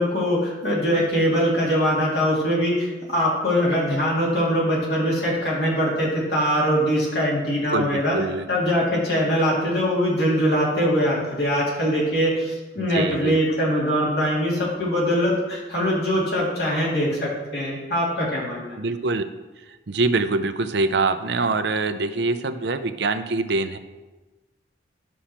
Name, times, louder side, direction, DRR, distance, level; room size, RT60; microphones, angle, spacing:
voice 1, 0.0-8.2 8.5-18.8, equal, 55° left, -5 dB, 2.7 m, -22 dB
voice 2, 7.7-8.4 12.8-13.4 18.8-19.2 19.7-23.8, right 3 dB, 65° right, 10 dB, 0.6 m, -24 dB
11.5 x 6.3 x 4.3 m, 1.2 s
head